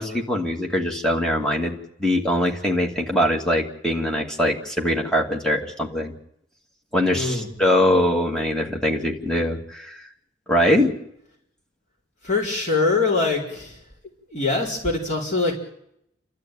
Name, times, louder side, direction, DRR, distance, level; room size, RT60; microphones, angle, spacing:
voice 1, 0.0-6.1 6.9-10.1 10.5-11.0, left 1 dB, 5° left, -1 dB, 2.5 m, -22 dB
voice 2, 7.1-7.5 12.2-13.8 14.3-15.5, left 3 dB, 40° left, -2 dB, 4.5 m, -23 dB
30.0 x 12.5 x 9.2 m, 0.76 s
head